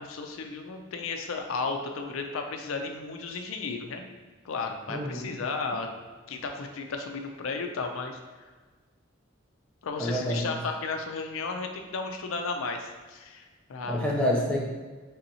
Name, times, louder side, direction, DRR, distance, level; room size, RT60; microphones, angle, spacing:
voice 1, 0.0-4.0 4.4-5.9 6.3-8.2 9.8-14.0, left 4 dB, 90° left, 4 dB, 0.4 m, -34 dB
voice 2, 4.9-5.3 10.0-10.5 13.9-14.6, equal, 5° left, -4 dB, 0.6 m, -27 dB
4.1 x 3.5 x 2.7 m, 1.4 s
head